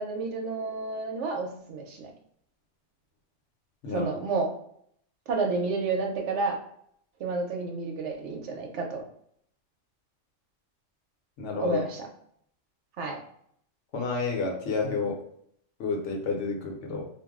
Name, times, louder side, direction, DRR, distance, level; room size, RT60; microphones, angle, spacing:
voice 1, 0.0-2.1 3.9-4.5 5.3-6.6 7.2-9.0 11.6-12.1 13.0-13.2, right 3 dB, 70° right, 2 dB, 0.9 m, -30 dB
voice 2, 11.4-11.8 13.9-15.2 15.8-17.0, left 4 dB, 75° left, 1 dB, 1.0 m, -30 dB
2.5 x 2.0 x 3.5 m, 0.68 s
omnidirectional pair, 1.3 m